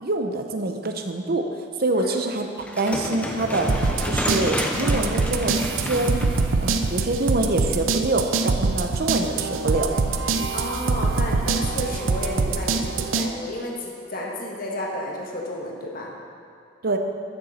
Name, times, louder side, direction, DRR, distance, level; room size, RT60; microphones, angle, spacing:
voice 1, 0.0-2.5 2.8-6.2 6.6-9.9 16.8-17.0, right 2 dB, 50° right, 5 dB, 0.8 m, -25 dB
sound 1, 2.6-7.7, left 1 dB, 5° left, 0.7 m, -30 dB
sound 2, 3.7-13.3, right 4 dB, 90° right, 0.6 m, -24 dB
voice 2, 10.5-16.1, left 1 dB, 45° left, -1 dB, 1.6 m, -32 dB
13.5 x 7.0 x 4.3 m, 2.3 s
head